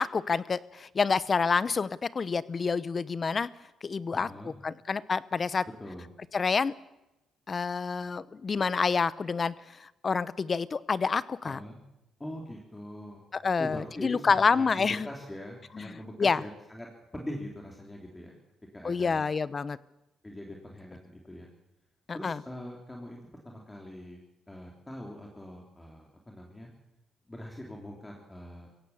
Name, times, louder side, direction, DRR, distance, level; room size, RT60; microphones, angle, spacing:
voice 1, 0.0-3.5 3.8-4.3 4.6-5.7 6.3-6.7 7.5-9.5 9.8-11.6 13.3-15.1 15.8-15.9 16.2-16.4 18.8-19.8 22.2-22.4, left 5 dB, 35° left, 18 dB, 0.8 m, -28 dB
voice 2, 4.1-4.5 5.8-6.1 11.4-11.8 12.2-13.2 13.6-18.4 18.7-19.2 20.2-21.5 22.1-23.2 23.4-24.2 24.5-26.7 27.3-28.7, left 1 dB, 15° left, 0 dB, 3.5 m, -42 dB
23.5 x 16.5 x 7.2 m, 0.92 s
cardioid pair, 90°, 0 cm